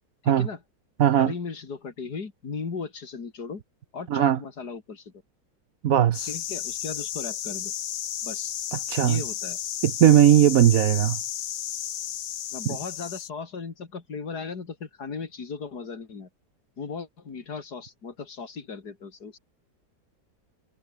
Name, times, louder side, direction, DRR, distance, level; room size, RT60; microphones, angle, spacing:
voice 1, 0.2-0.6 1.2-3.6 3.9-5.1 6.3-7.7 8.2-8.5 9.0-9.6 12.5-16.3 16.8-19.4, left 5 dB, 60° left, 3.1 m, -37 dB
voice 2, 1.0-1.3 4.1-4.4 5.8-6.3 8.7-9.2 9.8-11.2 12.7-12.8, right 10 dB, 60° right, 1.0 m, -19 dB
sound 1, 6.1-13.3, left 10 dB, 85° left, 1.8 m, -33 dB
omnidirectional pair, 2.0 m